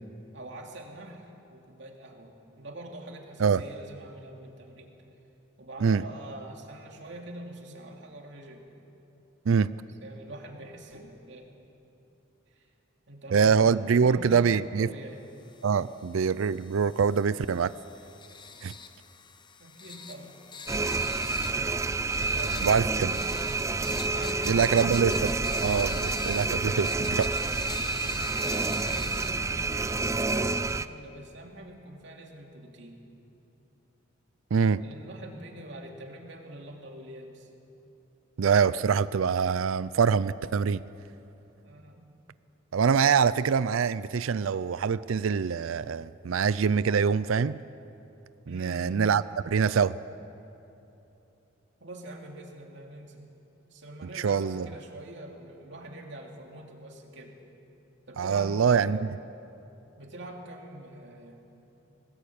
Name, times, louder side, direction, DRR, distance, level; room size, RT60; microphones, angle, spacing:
voice 1, 0.3-1.2 1.5-4.9 5.6-8.7 10.0-11.4 12.5-12.7 13.1-15.2 19.6-20.4 22.1-23.3 24.1-24.9 28.4-33.0 34.8-37.5 41.6-42.1 48.5-49.0 51.8-53.3 53.7-57.4 58.1-59.0 60.0-61.4, right 1 dB, 60° right, 1 dB, 2.9 m, -44 dB
voice 2, 13.3-14.9 15.6-17.7 18.6-18.7 22.6-23.1 24.5-25.3 25.6-27.3 34.5-34.8 38.4-40.8 42.7-47.6 48.5-50.0 54.1-54.7 58.2-59.1, right 6 dB, 80° right, 16 dB, 0.4 m, -24 dB
sound 1, 15.4-30.3, left 5 dB, 20° left, 0.9 m, -45 dB
sound 2, 20.7-30.9, right 3 dB, 15° right, 0.4 m, -29 dB
20.5 x 20.0 x 8.7 m, 3.0 s
head